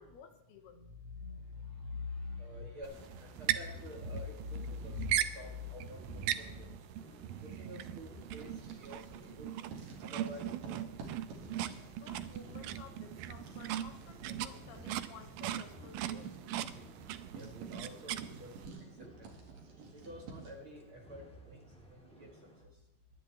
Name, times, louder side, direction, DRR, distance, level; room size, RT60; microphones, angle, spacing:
voice 1, 0.0-0.9 11.9-16.3, left 6 dB, 85° left, 6 dB, 3.2 m, -54 dB
voice 2, 0.7-6.8 7.4-9.5 10.0-10.9 17.3-19.4 19.7-22.8, left 3 dB, 45° right, 0 dB, 2.1 m, -46 dB
sound 1, 2.8-18.7, right 12 dB, 90° right, 1.8 m, -40 dB
sound 2, 2.9-22.6, equal, 5° left, 1.2 m, -58 dB
Writing, 8.2-9.4 9.7-20.7, right 3 dB, 60° right, 3.7 m, -52 dB
22.5 x 10.5 x 3.4 m, 0.90 s
omnidirectional pair, 4.5 m